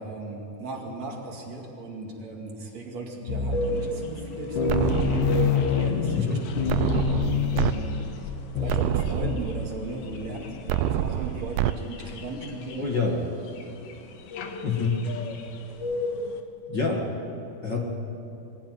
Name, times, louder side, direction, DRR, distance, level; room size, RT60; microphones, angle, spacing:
voice 1, 0.0-6.3 6.6-7.9 8.6-12.9, right 2 dB, 50° right, 0 dB, 3.3 m, -36 dB
sound 1, 3.3-3.9 4.2-4.3 4.6-9.9, left 6 dB, 65° left, 2.4 m, -27 dB
sound 2, 3.5-16.4, left 1 dB, 85° left, 3.3 m, -36 dB
sound 3, 4.7-5.7 6.7-7.7 8.2-8.3 8.7-9.7 10.7-11.7, right 12 dB, 80° right, 2.2 m, -27 dB
voice 2, 12.8-13.2 14.6-15.0 16.7-17.0 17.6-17.8, left 4 dB, 40° left, -1 dB, 1.8 m, -26 dB
22.5 x 15.5 x 9.4 m, 2.8 s
omnidirectional pair, 4.4 m